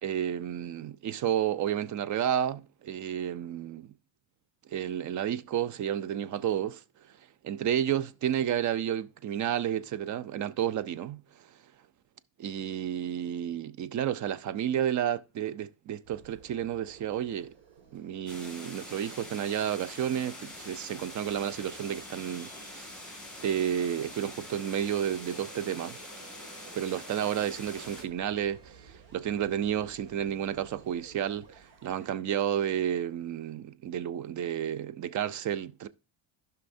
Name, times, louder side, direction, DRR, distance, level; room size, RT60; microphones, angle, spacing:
voice 1, 0.0-3.9 4.7-6.8 7.4-11.5 12.4-17.5 17.9-22.9 23.4-26.0 26.7-35.9, right 10 dB, 45° right, 0.4 m, -31 dB
sound 1, 16.0-32.1, right 6 dB, 80° right, 2.1 m, -55 dB
sound 2, 18.3-28.0, left 1 dB, ahead, 1.9 m, -45 dB
15.0 x 5.7 x 2.6 m
cardioid pair, 165°, 45 cm